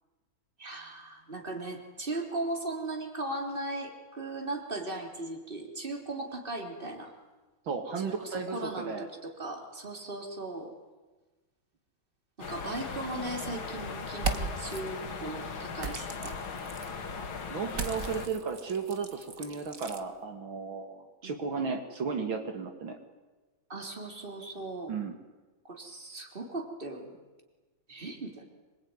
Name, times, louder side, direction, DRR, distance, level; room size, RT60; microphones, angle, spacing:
voice 1, 0.6-7.1 8.0-10.7 12.4-16.4 21.2-21.4 23.7-24.9 25.6-27.2 27.9-28.4, right 2 dB, 25° right, 3 dB, 3.8 m, -38 dB
voice 2, 7.7-9.1 17.5-23.0 24.9-25.1, right 5 dB, 75° right, 5 dB, 2.9 m, -34 dB
sound 1, 12.4-18.3, left 5 dB, 90° left, 2.9 m, -38 dB
sound 2, 14.1-14.8 15.8-16.9 17.7-20.0, right 4 dB, 45° right, 1.9 m, -37 dB
25.5 x 22.5 x 9.7 m, 1.2 s
omnidirectional pair, 2.2 m